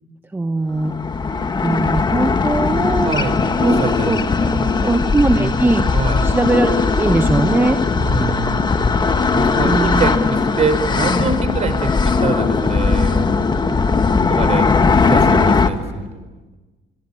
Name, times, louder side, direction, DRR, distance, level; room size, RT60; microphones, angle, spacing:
voice 1, 0.3-0.9 1.6-3.2 3.6-3.8 4.0-4.2 4.8-5.8 6.2-7.8 9.6-10.0, right 2 dB, 10° right, 7 dB, 1.0 m, -19 dB
sound 1, 0.8-15.7, left 4 dB, 25° left, 1.6 m, -18 dB
voice 2, 3.0-4.9 5.4-5.5 5.9-6.3 8.0-8.9 9.3-13.3 14.3-14.7 15.1-16.3, right 4 dB, 40° right, 10 dB, 4.6 m, -24 dB
27.0 x 22.0 x 8.6 m, 1.2 s
cardioid pair, 110°, 17 cm